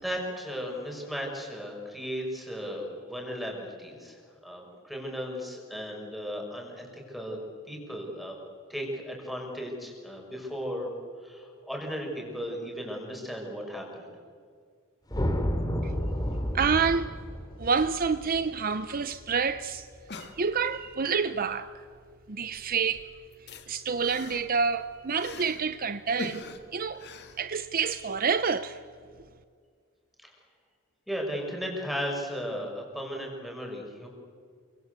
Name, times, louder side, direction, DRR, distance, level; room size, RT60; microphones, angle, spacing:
voice 1, 0.0-4.2 4.4-7.4 7.7-8.3 8.7-10.9 11.2-14.1 30.2-30.3 31.1-34.1, equal, ahead, 6.3 m, -36 dB
sound 1, 15.1-19.5, equal, 20° left, 2.7 m, -31 dB
voice 2, 16.5-17.1 17.6-19.9 20.3-21.7 22.3-23.1 23.7-26.4 26.7-27.0 27.4-28.8, right 5 dB, 40° right, 0.7 m, -28 dB
sound 2, 19.2-19.3 19.4-19.5 19.9-20.9 22.0-22.2 22.5-25.7 26.2-28.0 28.4-28.5, left 2 dB, 50° left, 2.2 m, -43 dB
29.0 x 25.0 x 8.2 m
head